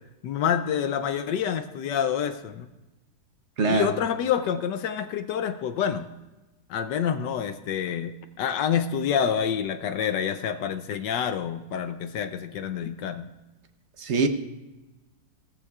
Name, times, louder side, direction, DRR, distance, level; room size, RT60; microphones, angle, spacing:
voice 1, 0.2-2.7 3.6-6.1 6.7-13.3, left 8 dB, 70° left, 10 dB, 1.1 m, -27 dB
voice 2, 3.6-3.9 14.0-14.3, right 3 dB, 50° right, 6 dB, 0.8 m, -23 dB
17.0 x 14.0 x 2.4 m, 1.1 s
omnidirectional pair, 2.2 m